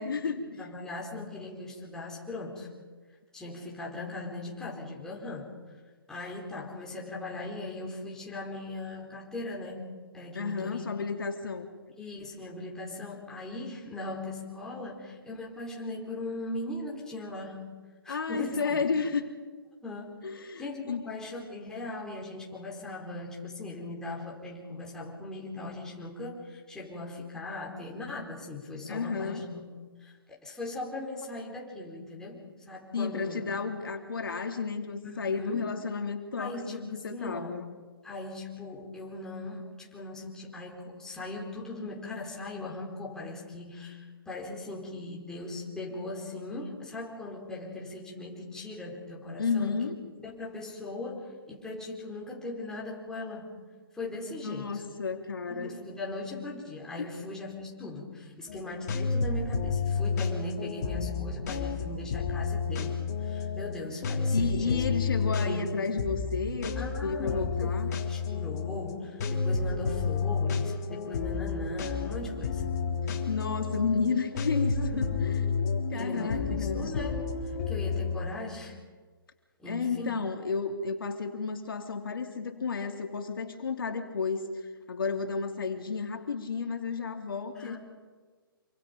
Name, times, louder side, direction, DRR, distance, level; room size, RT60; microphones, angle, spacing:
voice 1, 0.0-0.7 10.3-11.7 18.1-19.2 20.2-21.1 28.9-29.4 32.9-37.6 49.4-50.0 54.4-55.8 57.0-57.1 64.3-67.9 73.3-76.9 79.7-84.5 84.9-87.8, left 5 dB, 70° left, 4 dB, 2.7 m, -32 dB
voice 2, 0.6-2.7 3.3-5.5 6.1-10.8 12.0-17.7 18.0-18.8 19.8-29.7 30.0-30.2 30.4-33.4 35.0-35.6 36.4-37.6 38.0-49.9 50.2-53.6 53.9-54.8 55.5-64.8 65.1-65.7 66.8-72.6 74.7-75.1 75.9-78.8 79.6-80.2 87.5-87.8, left 2 dB, 5° left, -4 dB, 4.5 m, -39 dB
sound 1, 58.5-78.1, left 5 dB, 45° left, 3.5 m, -31 dB
27.0 x 25.0 x 5.3 m, 1.5 s
figure-of-eight pair, 140°, 12 cm